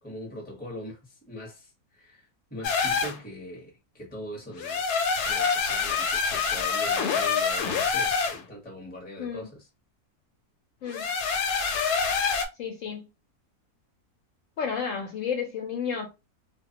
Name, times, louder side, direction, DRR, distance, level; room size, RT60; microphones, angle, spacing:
voice 1, 0.0-9.7, equal, 10° left, 0.8 m, -42 dB
sound 1, 2.6-3.2 4.6-8.4 10.9-12.5, left 5 dB, 85° left, 1.1 m, -26 dB
voice 2, 12.6-13.1 14.6-16.1, left 6 dB, 65° left, 0.9 m, -31 dB
2.4 x 2.1 x 2.7 m
omnidirectional pair, 1.6 m